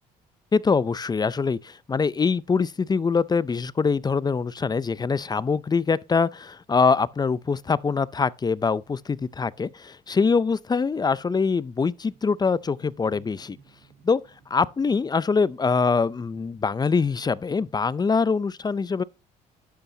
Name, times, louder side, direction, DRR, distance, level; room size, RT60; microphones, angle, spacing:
voice 1, 0.5-13.6 14.0-14.2 14.5-19.0, left 5 dB, 20° left, 0.5 m, -24 dB
sound 1, 12.0-17.7, right 6 dB, 80° right, 4.0 m, -57 dB
11.5 x 8.0 x 2.8 m
supercardioid pair, 85°, 19 cm